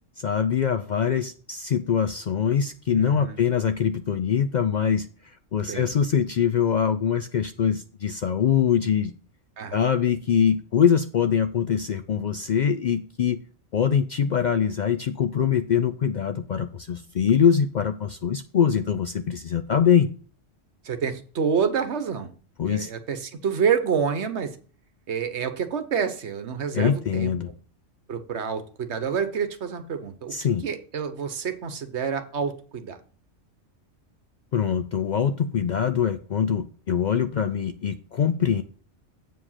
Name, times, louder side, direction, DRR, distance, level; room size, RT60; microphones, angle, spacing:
voice 1, 0.2-5.1 5.5-9.1 9.7-13.4 13.7-20.1 22.6-22.9 26.7-27.5 30.3-30.6 34.5-38.6, left 8 dB, 75° left, 9 dB, 0.4 m, -23 dB
voice 2, 2.9-3.4 5.7-5.9 9.6-9.8 20.8-22.3 22.6-24.5 25.1-27.3 28.1-30.3 30.6-33.0, right 6 dB, 60° right, 9 dB, 1.2 m, -28 dB
8.0 x 5.0 x 5.6 m, 0.40 s
omnidirectional pair, 1.3 m